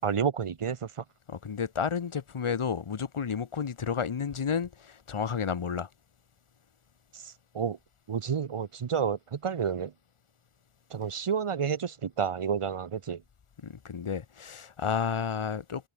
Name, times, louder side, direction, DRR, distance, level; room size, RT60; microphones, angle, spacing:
voice 1, 0.0-0.9 7.1-7.8 8.1-9.9 10.9-13.2, right 7 dB, 90° right, 7.3 m, -30 dB
voice 2, 1.3-5.9 13.6-15.9, left 6 dB, 75° left, 6.5 m, -31 dB
wide cardioid pair, 135°, 50 cm